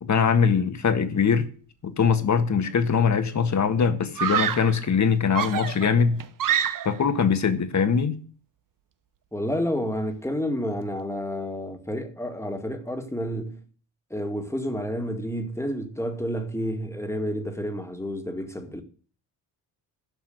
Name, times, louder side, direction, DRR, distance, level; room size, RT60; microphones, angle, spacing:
voice 1, 0.0-1.5 1.8-6.2 6.9-8.2, left 6 dB, 45° left, 1.7 m, -22 dB
Screaming, 2.6-3.1 4.2-4.8 5.3-7.1, right 9 dB, 50° right, 0.9 m, -27 dB
voice 2, 9.3-13.6 14.1-18.8, equal, 5° left, 2.1 m, -30 dB
12.0 x 5.6 x 7.9 m
cardioid pair, 80°, 41 cm